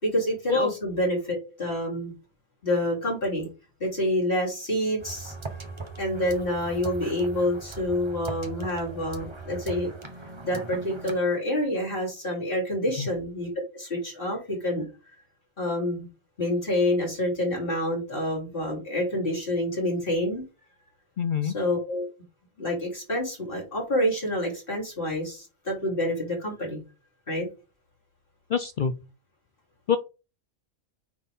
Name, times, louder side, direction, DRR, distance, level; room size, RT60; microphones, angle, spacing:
voice 1, 0.0-2.1 2.6-3.5 3.8-5.3 6.0-9.9 10.4-14.8 15.6-16.1 16.4-20.4 21.4-22.1 22.6-26.8 27.3-27.5, left 1 dB, 40° left, -3 dB, 3.7 m, -27 dB
sound 1, 5.0-11.2, right 3 dB, 25° right, 1.0 m, -39 dB
voice 2, 21.2-21.5 28.5-28.9 29.9-30.0, left 6 dB, 70° left, 11 dB, 0.4 m, -25 dB
9.2 x 4.2 x 3.6 m, 0.31 s
omnidirectional pair, 1.4 m